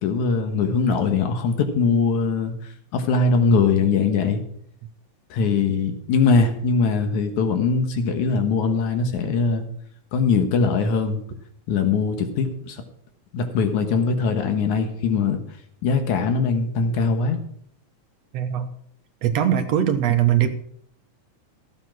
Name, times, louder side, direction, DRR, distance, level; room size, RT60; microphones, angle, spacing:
voice 1, 0.0-2.5 2.9-4.4 5.3-9.6 10.1-11.2 11.7-12.8 13.3-15.4 15.8-17.4, left 4 dB, 90° left, 6 dB, 2.9 m, -21 dB
voice 2, 18.3-18.7 19.2-20.5, right 10 dB, 65° right, 7 dB, 2.0 m, -20 dB
14.5 x 8.4 x 6.1 m, 0.68 s
omnidirectional pair, 3.3 m